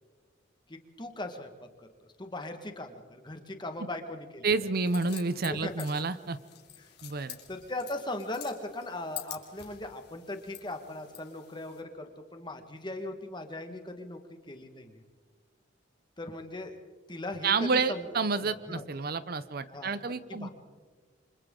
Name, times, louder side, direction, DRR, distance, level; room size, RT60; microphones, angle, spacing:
voice 1, 0.7-1.5 1.8-1.9 2.2-4.5 5.5-5.9 6.8-6.9 7.5-14.2 14.5-15.0 16.2-16.7 17.1-18.8 19.7-20.0 20.3-20.5, left 1 dB, 25° left, 6 dB, 1.6 m, -39 dB
voice 2, 4.4-6.4 7.0-7.4 17.4-20.5, right 4 dB, 50° right, 14 dB, 0.7 m, -29 dB
sound 1, 4.8-11.8, left 12 dB, 55° left, 2.9 m, -48 dB
28.5 x 25.0 x 3.8 m, 1.5 s
head